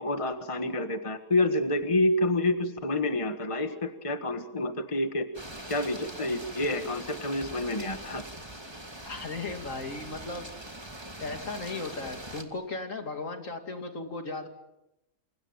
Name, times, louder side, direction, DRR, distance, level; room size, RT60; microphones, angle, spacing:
voice 1, 0.0-5.3 5.7-8.2, left 2 dB, 20° left, 7 dB, 1.7 m, -28 dB
sound 1, 5.3-12.4, right 1 dB, 15° right, 2.7 m, -42 dB
voice 2, 9.0-10.5 11.2-14.5, left 3 dB, 60° left, 5 dB, 3.1 m, -36 dB
28.5 x 27.5 x 7.5 m, 0.93 s
omnidirectional pair, 1.5 m